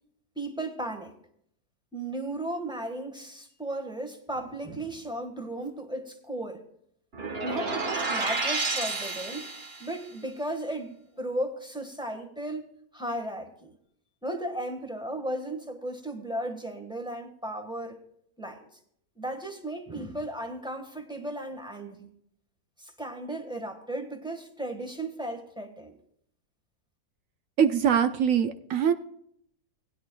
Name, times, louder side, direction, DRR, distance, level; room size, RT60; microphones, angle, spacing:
voice 1, 0.3-1.2 1.9-6.6 7.4-9.5 9.8-12.7 12.9-13.8 14.2-18.0 18.4-18.7 19.2-22.1 22.8-26.0, right 1 dB, 5° right, 4 dB, 1.3 m, -35 dB
Alien windbells up, 7.1-9.9, right 3 dB, 40° right, 1.5 m, -30 dB
voice 2, 27.6-28.9, right 8 dB, 65° right, 7 dB, 1.0 m, -23 dB
19.5 x 11.0 x 2.3 m, 0.68 s
omnidirectional pair, 1.6 m